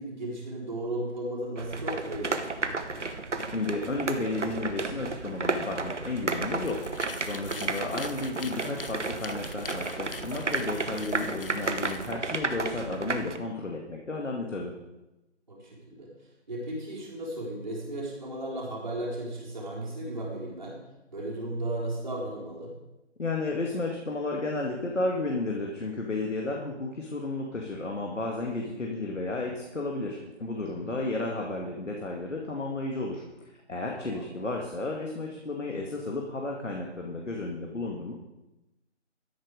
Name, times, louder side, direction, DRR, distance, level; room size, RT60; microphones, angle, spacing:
voice 1, 0.0-2.7 7.4-7.7 15.5-16.1 16.5-20.7 21.1-22.7 30.8-31.2 34.0-34.3, right 1 dB, 40° right, -5 dB, 4.2 m, -35 dB
sound 1, 1.6-13.4, right 3 dB, 75° right, 1.3 m, -33 dB
voice 2, 3.5-6.9 7.2-14.8 23.2-38.1, left 2 dB, 85° left, 0 dB, 2.3 m, -33 dB
sound 2, 6.5-12.1, left 3 dB, 50° left, 1.0 m, -43 dB
13.0 x 10.5 x 4.9 m, 1.0 s
figure-of-eight pair, 180°, 36 cm